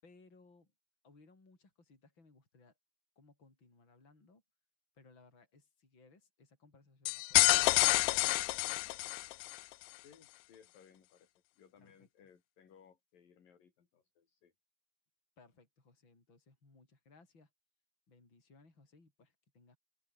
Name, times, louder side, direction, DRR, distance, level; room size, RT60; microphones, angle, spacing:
voice 1, 0.0-0.7 1.0-2.8 3.1-4.4 4.9-8.3 8.6-8.9 11.8-12.3 15.4-17.5 18.1-19.8, left 3 dB, 25° left, 7.0 m, -64 dB
sound 1, 7.1-9.6, left 24 dB, 85° left, 2.4 m, -28 dB
voice 2, 10.0-14.5, left 7 dB, 55° left, 5.0 m, -63 dB
open air
omnidirectional pair, 5.1 m